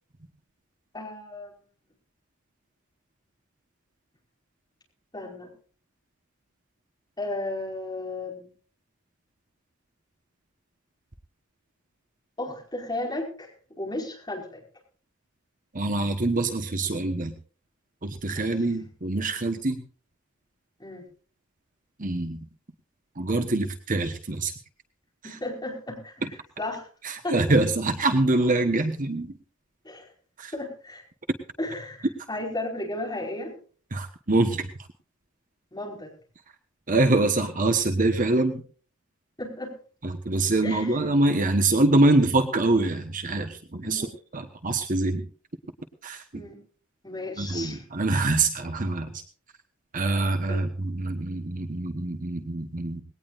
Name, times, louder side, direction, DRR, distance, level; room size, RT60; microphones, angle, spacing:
voice 1, 0.9-1.6 5.1-5.5 7.2-8.5 12.4-13.5 13.8-14.6 18.3-18.5 20.8-21.0 25.2-26.1 26.6-26.9 27.2-27.4 29.8-30.1 30.5-31.0 31.6-33.5 35.7-36.1 39.4-39.7 40.6-41.0 43.8-44.1 46.3-46.6 47.0-47.8 50.5-50.6, left 2 dB, 20° left, -1 dB, 5.1 m, -34 dB
voice 2, 15.7-17.3 18.0-19.8 22.0-22.5 23.2-24.5 25.2-25.4 26.2-26.3 27.0-29.3 30.4-30.5 33.9-34.7 36.9-38.6 40.0-44.1 44.3-45.3 46.0-46.4 47.4-49.2 49.9-53.0, right 2 dB, 40° right, 7 dB, 1.2 m, -25 dB
20.5 x 18.0 x 2.6 m, 0.40 s
head